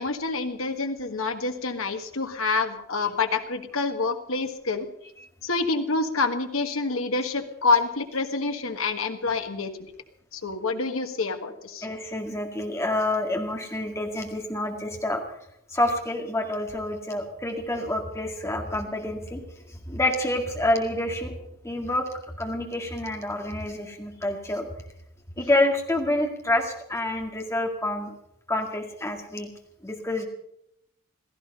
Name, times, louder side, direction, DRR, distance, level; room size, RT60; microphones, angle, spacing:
voice 1, 0.0-4.9 5.4-9.7 10.3-11.9, left 3 dB, 70° left, 6 dB, 1.6 m, -27 dB
voice 2, 11.8-15.2 15.7-19.4 19.7-21.3 21.6-22.1 22.4-24.7 25.4-28.1 28.5-29.5 29.8-30.3, left 1 dB, 15° left, 2 dB, 2.0 m, -27 dB
16.5 x 14.0 x 5.5 m, 0.77 s
head